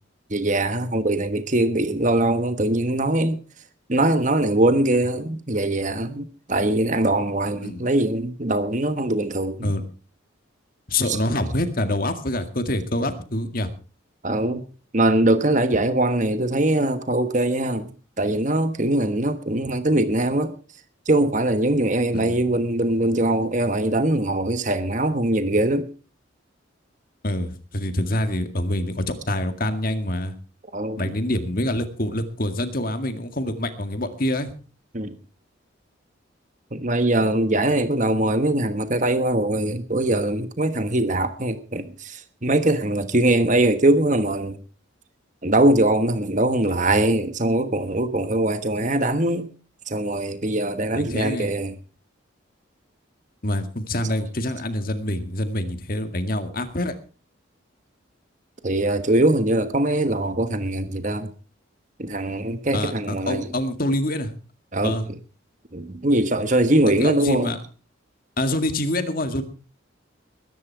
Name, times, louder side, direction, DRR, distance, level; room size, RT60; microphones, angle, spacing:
voice 1, 0.3-3.4 3.9-9.7 11.1-11.2 14.2-14.6 14.9-17.9 18.2-20.5 21.1-25.9 30.7-31.1 34.9-35.1 36.7-44.6 45.4-49.5 49.9-51.8 58.6-61.3 62.0-63.6 64.7-65.2 65.7-67.5, right 1 dB, 40° right, 1.3 m, -22 dB
voice 2, 10.9-13.7 22.1-22.4 27.2-30.3 31.0-34.5 50.9-51.5 53.4-56.9 62.7-64.3 64.8-65.1 67.0-67.6 68.4-69.4, left 1 dB, 45° left, 2.0 m, -26 dB
21.0 x 10.5 x 4.7 m
head